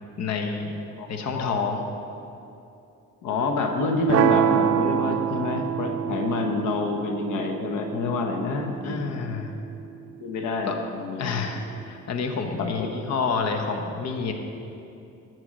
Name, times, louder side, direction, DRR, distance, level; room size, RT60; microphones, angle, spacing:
voice 1, 0.2-0.7 1.1-1.8 8.8-9.5 10.7-10.8 11.2-14.3, left 5 dB, 60° left, 4 dB, 1.0 m, -28 dB
voice 2, 1.0-1.6 3.2-9.1 10.2-11.4 12.6-13.1, left 3 dB, 85° left, 3 dB, 1.0 m, -28 dB
sound 1, 4.1-10.1, right 10 dB, 55° right, 0.5 m, -26 dB
13.0 x 4.6 x 6.4 m, 2.7 s
cardioid pair, 90°, 30 cm